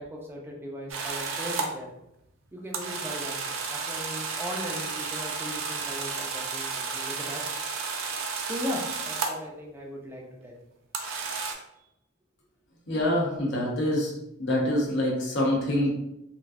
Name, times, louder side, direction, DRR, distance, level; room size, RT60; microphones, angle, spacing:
voice 1, 0.0-1.9 2.5-7.5 8.4-10.6 11.8-11.9, equal, 10° right, -1 dB, 0.5 m, -38 dB
sound 1, 0.9-1.7 2.7-9.5 10.9-11.5, right 4 dB, 70° right, 0.4 m, -32 dB
voice 2, 12.9-14.1 14.4-15.9, left 1 dB, 60° left, -3 dB, 0.7 m, -25 dB
3.2 x 2.4 x 2.4 m, 0.84 s
head